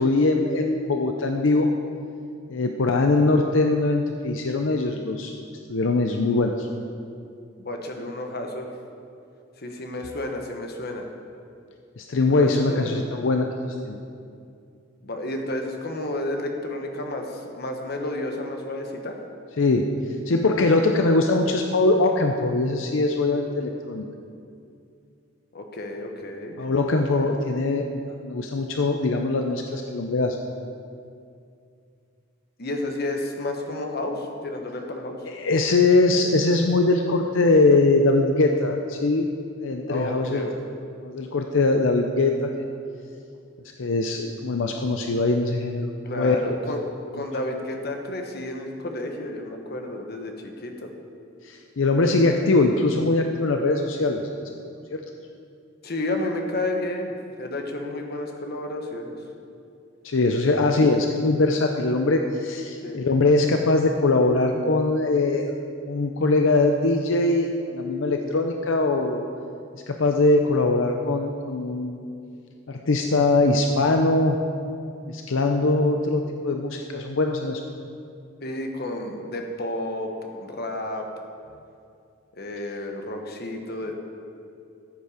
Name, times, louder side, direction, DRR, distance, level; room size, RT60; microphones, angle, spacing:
voice 1, 0.0-1.7 2.5-5.3 5.7-6.7 12.0-13.5 13.9-14.0 19.6-19.9 20.3-24.0 26.6-27.9 28.2-30.4 35.3-39.3 39.6-40.5 41.0-42.5 43.8-46.5 51.4-54.4 54.9-55.0 60.0-65.4 65.9-69.2 69.9-72.0 72.7-74.4 75.1-77.6, left 2 dB, 80° left, 4 dB, 0.6 m, -22 dB
voice 2, 7.6-8.7 9.6-11.1 12.4-12.9 15.0-19.2 25.5-26.6 32.6-35.2 39.9-40.5 46.0-50.9 55.8-59.2 62.8-63.0 78.4-81.1 82.3-84.0, left 1 dB, 55° left, 3 dB, 1.3 m, -31 dB
14.0 x 8.1 x 5.0 m, 2.4 s
head